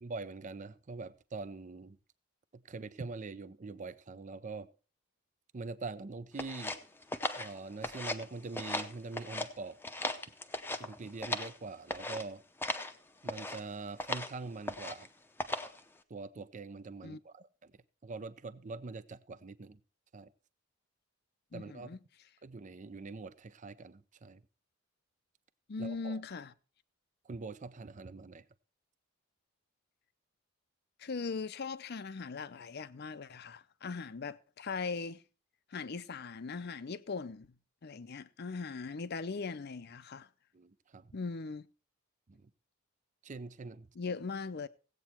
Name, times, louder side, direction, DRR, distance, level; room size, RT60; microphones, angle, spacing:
voice 1, 0.0-2.0 2.5-4.7 5.5-6.8 7.4-9.8 10.8-12.4 13.2-15.1 16.1-17.7 18.0-19.8 20.1-20.3 21.5-21.9 22.4-24.4 25.8-26.2 27.2-28.5 40.5-41.2 42.3-42.5 43.2-43.9, right 3 dB, 35° right, 0.5 m, -44 dB
sound 1, 6.4-8.3 8.5-9.5 9.8-11.6 11.9-12.2 12.6-12.9 13.3-13.6 14.0-14.3 14.7-15.1 15.4-15.8, left 2 dB, 10° left, 0.7 m, -37 dB
voice 2, 21.5-22.0 25.7-26.5 31.0-35.2 35.7-37.5 37.8-40.3 41.1-41.7 44.0-44.7, left 4 dB, 50° left, 0.6 m, -39 dB
16.0 x 8.4 x 4.4 m
head